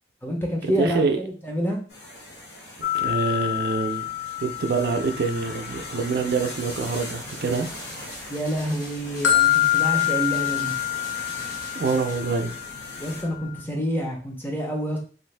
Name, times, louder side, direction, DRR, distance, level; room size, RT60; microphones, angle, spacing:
voice 1, 0.2-1.8 8.3-10.7 13.0-15.0, equal, 10° left, 0 dB, 0.6 m, -28 dB
voice 2, 0.8-1.2 2.9-4.1 4.4-7.7 11.7-12.6, right 4 dB, 60° right, 6 dB, 0.4 m, -25 dB
sound 1, 1.9-13.2, left 1 dB, 70° left, 1.1 m, -40 dB
sound 2, 2.8-8.0 8.2-13.6, left 13 dB, 90° left, 0.6 m, -27 dB
sound 3, 6.7-12.2, equal, 45° left, 1.5 m, -43 dB
2.6 x 2.5 x 3.2 m, 0.39 s
head